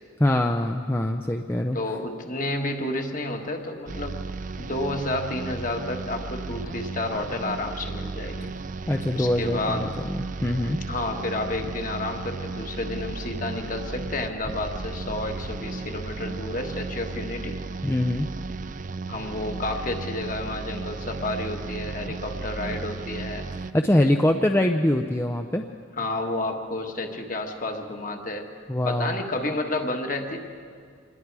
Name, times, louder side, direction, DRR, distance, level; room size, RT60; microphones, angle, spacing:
voice 1, 0.2-1.8 8.9-10.8 17.8-18.3 23.6-25.6 28.7-29.2, left 1 dB, 10° left, 4 dB, 0.5 m, -23 dB
voice 2, 1.7-4.2 4.6-8.5 9.1-9.9 10.9-17.6 19.1-23.4 26.0-28.5 28.8-30.4, left 2 dB, 40° left, 3 dB, 1.6 m, -30 dB
sound 1, 3.9-23.7, right 4 dB, 40° right, 0.4 m, -35 dB
sound 2, 11.5-16.9, equal, 75° left, 5.5 m, -46 dB
26.5 x 20.5 x 4.8 m, 2.2 s
head